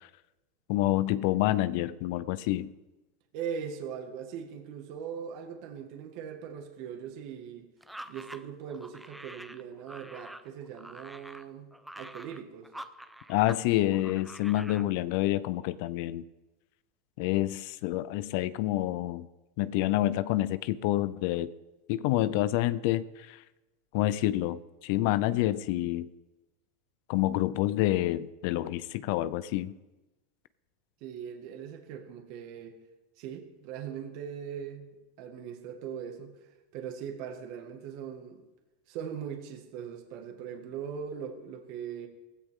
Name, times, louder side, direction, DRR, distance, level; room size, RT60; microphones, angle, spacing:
voice 1, 0.7-2.7 13.3-16.2 17.2-19.3 19.6-21.5 21.9-23.4 23.9-26.1 27.1-29.7, left 15 dB, 60° left, 16 dB, 0.5 m, -28 dB
voice 2, 3.3-7.7 8.1-11.7 12.0-12.7 31.0-32.8 33.2-34.9 35.2-36.3 36.7-38.4 38.9-42.1, right 7 dB, 60° right, 4 dB, 1.9 m, -40 dB
sound 1, 7.8-13.6 13.9-14.9, right 1 dB, 5° right, 0.7 m, -46 dB
16.0 x 15.5 x 3.8 m, 1.1 s
hypercardioid pair, 115°, 0 cm